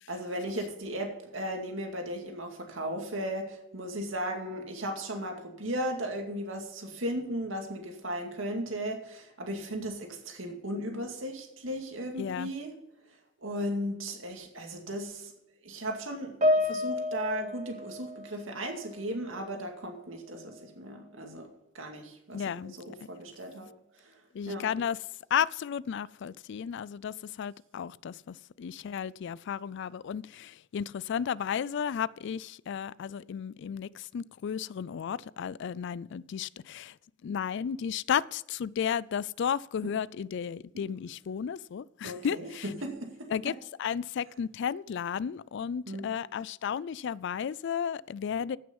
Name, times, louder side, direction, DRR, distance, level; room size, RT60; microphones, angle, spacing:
voice 1, 0.1-12.7 13.4-15.3 15.6-21.5 21.7-23.7 24.0-24.2 24.5-24.6 39.8-39.9 42.0-43.5 45.9-46.1, equal, 80° right, 2.2 m, -36 dB
voice 2, 12.2-12.5 22.3-22.7 24.3-25.0 25.3-37.0 37.2-42.7 43.3-43.5 43.8-48.6, left 8 dB, 65° left, 0.3 m, -33 dB
Piano, 16.4-19.1 19.3-19.6 20.4-20.5, left 1 dB, 40° right, 2.4 m, -30 dB
15.5 x 6.3 x 5.4 m
head